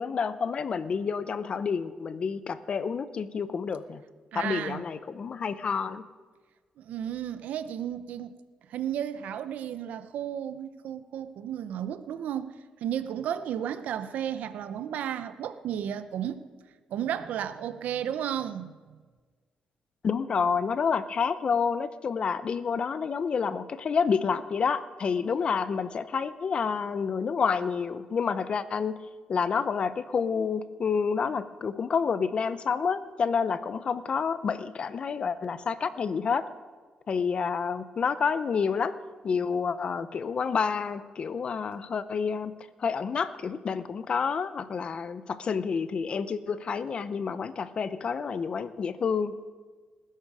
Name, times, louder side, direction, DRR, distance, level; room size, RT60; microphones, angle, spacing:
voice 1, 0.0-4.0 4.3-6.0 20.0-29.0 29.3-36.5 37.1-38.9 39.2-42.5 42.8-49.4, left 6 dB, 45° left, 13 dB, 0.7 m, -29 dB
voice 2, 4.3-4.8 6.8-8.4 8.7-12.5 12.8-16.5 16.9-19.0, right 10 dB, 85° right, 12 dB, 0.7 m, -33 dB
19.5 x 11.5 x 4.9 m, 1.4 s
cardioid pair, 130°, 3 cm